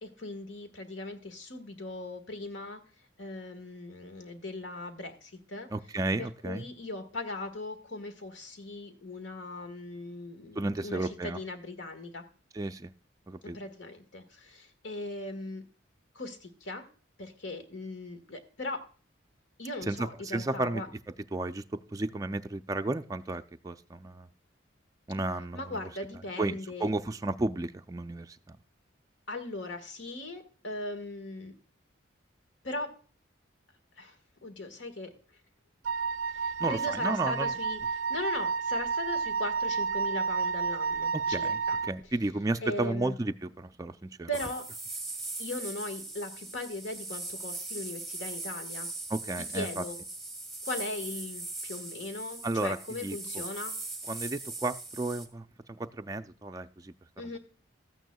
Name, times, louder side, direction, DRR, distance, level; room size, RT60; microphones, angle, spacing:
voice 1, 0.0-2.8 3.2-5.7 6.2-12.2 13.4-15.6 16.1-16.8 17.2-18.8 19.6-20.9 25.5-26.9 29.3-31.5 32.6-32.9 34.0-34.2 34.4-35.1 36.3-41.8 42.6-43.1 44.3-44.6 45.4-48.9 49.4-50.0 50.6-53.7 57.2-57.4, left 2 dB, 75° left, 7 dB, 1.6 m, -39 dB
voice 2, 5.7-6.7 10.5-11.4 12.5-12.9 13.3-13.6 19.9-20.8 21.3-21.6 21.9-24.3 25.1-25.9 26.4-28.6 36.6-37.5 41.1-44.3 49.1-49.8 52.4-53.4 54.1-57.4, right 2 dB, 20° right, 7 dB, 0.3 m, -33 dB
Wind instrument woodwind instrument, 35.8-41.9, right 5 dB, 85° right, 0.4 m, -31 dB
sound 1, 44.3-55.3, right 2 dB, ahead, 1.1 m, -40 dB
13.5 x 9.1 x 2.3 m, 0.39 s
head